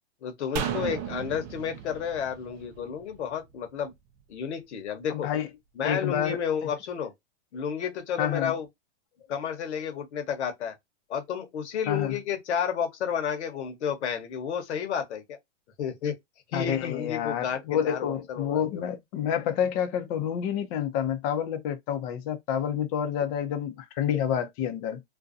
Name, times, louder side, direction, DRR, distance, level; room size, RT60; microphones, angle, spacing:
voice 1, 0.2-3.9 4.3-5.3 5.8-7.1 7.5-8.7 9.3-10.7 11.1-15.4 15.8-16.1 16.5-18.8, left 7 dB, 70° left, 1.0 m, -31 dB
sound 1, 0.6-3.9 4.2-4.3, right 8 dB, 30° right, 0.5 m, -35 dB
voice 2, 5.1-5.5 5.8-6.4 8.2-8.5 11.9-12.2 16.5-25.0, left 9 dB, 35° left, 0.6 m, -28 dB
2.5 x 2.2 x 2.5 m
hypercardioid pair, 135°, 35 cm